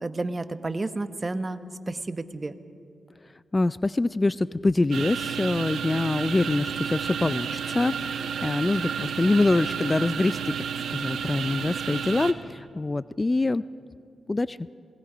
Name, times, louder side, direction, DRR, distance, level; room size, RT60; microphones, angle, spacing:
voice 1, 0.0-1.6 1.9-2.5, right 2 dB, 35° right, 10 dB, 1.1 m, -31 dB
voice 2, 3.5-10.6 10.9-13.6 14.3-14.6, left 2 dB, 30° left, 16 dB, 0.4 m, -25 dB
sound 1, 4.9-12.3, right 7 dB, 80° right, 1.1 m, -31 dB
26.5 x 20.0 x 5.1 m, 2.3 s
cardioid pair, 60°, 0 cm